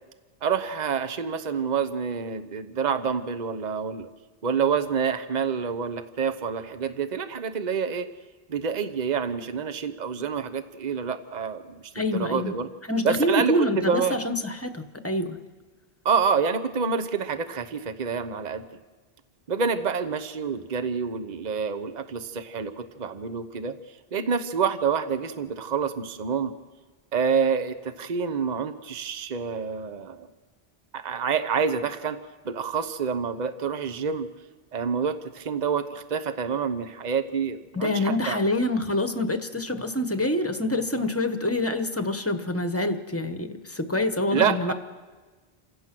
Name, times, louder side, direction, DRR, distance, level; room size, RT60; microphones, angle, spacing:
voice 1, 0.4-4.1 4.4-8.1 8.5-12.7 13.0-14.2 16.0-18.6 19.5-23.8 24.1-26.5 27.1-30.3 30.9-32.2 32.4-34.3 34.7-38.4 44.3-44.7, right 6 dB, 45° right, 10 dB, 1.0 m, -27 dB
voice 2, 11.9-12.5 12.9-15.4 37.7-44.7, left 1 dB, 15° left, 8 dB, 1.1 m, -26 dB
28.0 x 16.0 x 6.0 m, 1.3 s
omnidirectional pair, 1.1 m